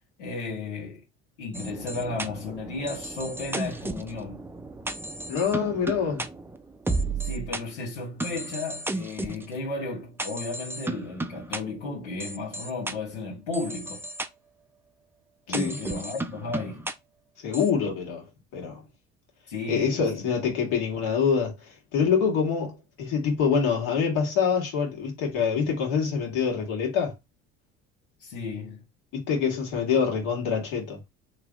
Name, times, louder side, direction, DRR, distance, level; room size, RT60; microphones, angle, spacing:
voice 1, 0.2-1.0 1.4-4.4 7.2-14.1 15.5-16.9 19.5-20.6 28.2-28.8, left 3 dB, 90° left, 1.2 m, -34 dB
sound 1, 1.5-7.6 8.2-9.4 10.2-11.6 12.2-12.9 13.5-14.3 15.5-16.9 17.5-17.7, right 2 dB, 5° right, 0.4 m, -33 dB
voice 2, 5.3-6.2 15.5-15.8 17.4-18.2 18.5-18.8 19.7-21.5 21.9-27.1 29.1-31.0, left 6 dB, 70° left, 1.6 m, -25 dB
3.2 x 2.5 x 3.5 m
hypercardioid pair, 70°, 34 cm